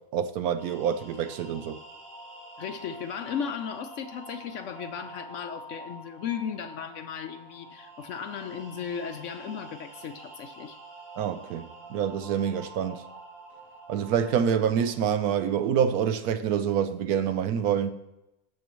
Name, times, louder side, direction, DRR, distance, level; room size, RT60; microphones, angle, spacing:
voice 1, 0.1-1.8 11.2-13.0 13.9-17.9, right 8 dB, 80° right, 1.1 m, -26 dB
sound 1, 0.6-15.9, right 2 dB, 45° right, 4.2 m, -47 dB
voice 2, 2.6-10.8, left 7 dB, 65° left, 0.8 m, -36 dB
19.5 x 6.8 x 3.0 m
omnidirectional pair, 1.6 m